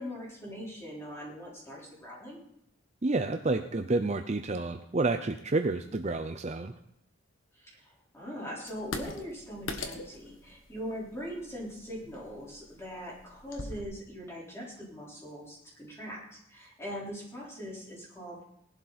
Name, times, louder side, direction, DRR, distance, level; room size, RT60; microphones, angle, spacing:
voice 1, 0.0-2.4 7.5-16.2 16.5-18.4, equal, 10° left, -5 dB, 4.4 m, -41 dB
voice 2, 3.0-6.7, right 3 dB, 30° right, 7 dB, 0.6 m, -29 dB
sound 1, 8.7-13.8, left 2 dB, 65° left, 1.4 m, -42 dB
18.0 x 11.5 x 4.3 m, 0.77 s
head